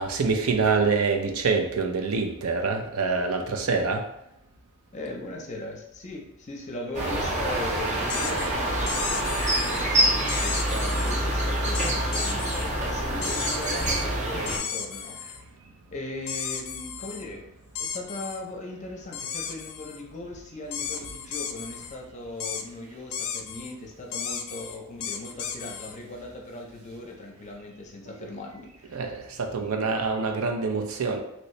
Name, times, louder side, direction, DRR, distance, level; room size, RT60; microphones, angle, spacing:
voice 1, 0.0-4.0 28.2-28.3 28.9-31.2, right 4 dB, 80° right, 4 dB, 0.5 m, -26 dB
voice 2, 4.9-15.2 15.9-29.0 29.6-30.0, left 2 dB, 35° left, 0 dB, 0.6 m, -39 dB
sound 1, 6.9-14.6, right 1 dB, 35° right, 0.6 m, -26 dB
sound 2, 8.1-8.5 8.9-9.8 10.3-11.2 11.7-12.7 13.2-14.1 14.5-15.4 16.3-17.3 17.8-18.4 19.1-20.0 20.7-22.0 22.4-22.6 23.1-23.7 24.1-26.0, left 7 dB, 80° left, 0.4 m, -34 dB
3.0 x 2.7 x 3.1 m, 0.80 s
head